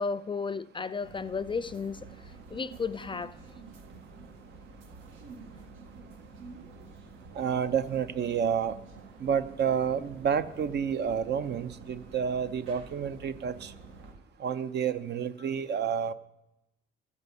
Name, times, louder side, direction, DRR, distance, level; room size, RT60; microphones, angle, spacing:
voice 1, 0.0-2.1 2.5-3.4, left 5 dB, 25° left, 0.3 m, -33 dB
sound 1, 1.0-14.1, right 4 dB, 80° right, 1.6 m, -49 dB
voice 2, 7.3-8.7 9.2-13.7 14.4-16.1, right 7 dB, 55° right, 0.7 m, -29 dB
13.5 x 5.3 x 8.3 m
cardioid pair, 90°, 20 cm